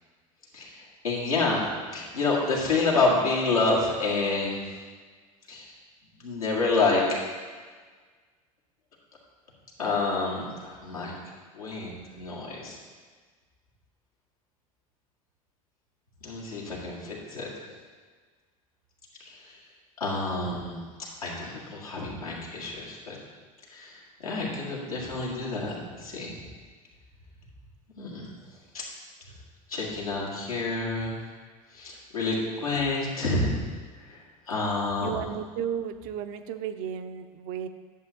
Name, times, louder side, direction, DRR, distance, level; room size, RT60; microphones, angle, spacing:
voice 1, 1.0-1.6 1.9-4.6 5.5-5.7 6.2-7.0 9.8-11.1 11.5-12.8 16.2-17.5 19.2-19.3 20.0-23.2 23.7-24.0 24.2-26.3 28.0-28.3 28.7-28.9 29.7-31.2 31.7-33.5 34.0-34.2 34.5-35.2, left 3 dB, 85° left, -4 dB, 1.8 m, -28 dB
voice 2, 35.0-37.7, right 9 dB, 50° right, 9 dB, 0.5 m, -34 dB
11.0 x 6.9 x 2.8 m, 1.5 s
figure-of-eight pair, 75°, 18 cm